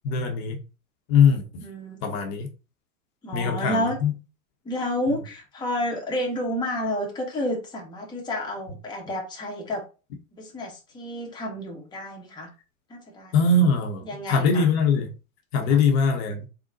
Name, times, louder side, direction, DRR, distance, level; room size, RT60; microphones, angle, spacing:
voice 1, 0.0-0.6 1.1-1.4 2.0-2.5 3.3-4.1 13.3-15.1 15.5-16.4, left 4 dB, 45° left, 0.9 m, -21 dB
voice 2, 1.6-2.0 3.2-4.0 4.6-9.8 10.3-12.5 12.9-13.5 14.0-14.7 15.7-15.8, left 1 dB, 10° left, 0.9 m, -30 dB
3.8 x 2.2 x 3.9 m
hypercardioid pair, 120°, 45 cm